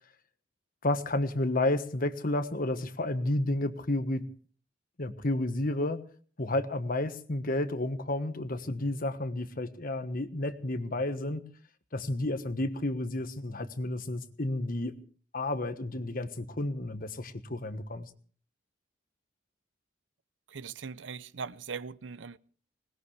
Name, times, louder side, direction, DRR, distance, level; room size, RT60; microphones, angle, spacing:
voice 1, 0.8-4.2 5.0-6.0 6.4-11.4 11.9-14.9 15.3-18.1, left 1 dB, 50° left, 1.3 m, -31 dB
voice 2, 20.5-22.4, right 5 dB, 80° right, 0.6 m, -40 dB
20.5 x 19.5 x 3.3 m
head